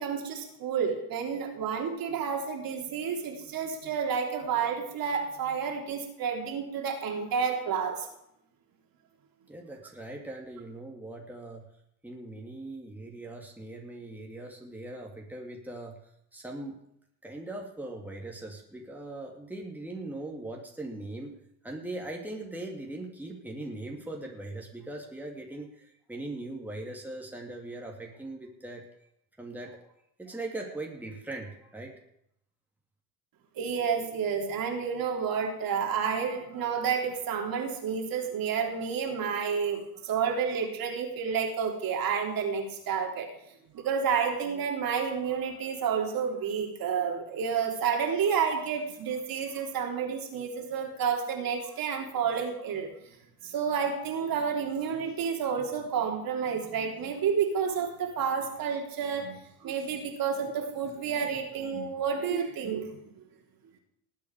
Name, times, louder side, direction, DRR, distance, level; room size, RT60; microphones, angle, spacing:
voice 1, 0.0-8.1 33.6-43.3 43.7-52.9 53.4-62.9, right 6 dB, 45° right, 1 dB, 3.5 m, -30 dB
voice 2, 9.5-11.7 12.0-16.0 16.3-16.8 17.2-21.3 21.6-28.9 29.4-29.8 30.2-31.9, right 2 dB, 5° right, 0 dB, 2.6 m, -40 dB
19.5 x 8.4 x 4.9 m, 0.76 s
hypercardioid pair, 70°, 48 cm